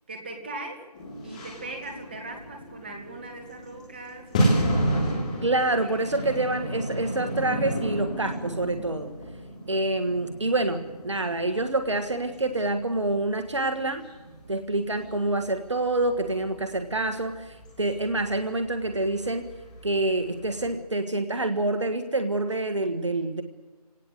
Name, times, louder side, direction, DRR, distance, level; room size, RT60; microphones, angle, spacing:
voice 1, 0.1-0.9 1.2-4.7 5.8-5.9, right 2 dB, 15° right, 3 dB, 2.1 m, -40 dB
sound 1, 0.9-20.7, equal, 10° left, 3.0 m, -33 dB
voice 2, 5.4-9.1 9.7-14.0 14.5-19.4 19.8-23.4, right 2 dB, 45° right, 7 dB, 1.6 m, -27 dB
27.0 x 18.0 x 8.1 m, 1.2 s
figure-of-eight pair, 170°, 20 cm